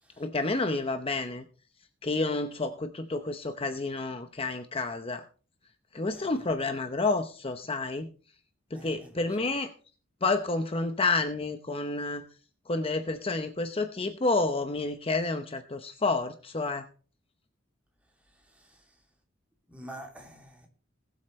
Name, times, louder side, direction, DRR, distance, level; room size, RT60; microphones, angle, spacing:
voice 1, 0.2-1.4 2.0-5.2 5.9-8.1 8.7-9.7 10.2-12.2 12.7-16.9, left 3 dB, 30° left, 0.8 m, -29 dB
voice 2, 8.7-9.5 18.4-19.0 19.7-20.7, right 1 dB, 5° right, 2.7 m, -48 dB
20.0 x 8.1 x 3.2 m
head